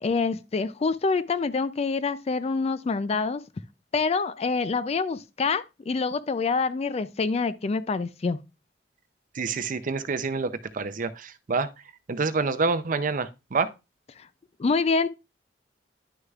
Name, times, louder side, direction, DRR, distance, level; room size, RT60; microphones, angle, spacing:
voice 1, 0.0-3.4 3.9-8.4 14.6-15.1, left 4 dB, 35° left, 0.4 m, -26 dB
voice 2, 9.3-11.7 12.1-13.7, right 4 dB, 45° right, 0.5 m, -27 dB
10.5 x 6.4 x 2.4 m
head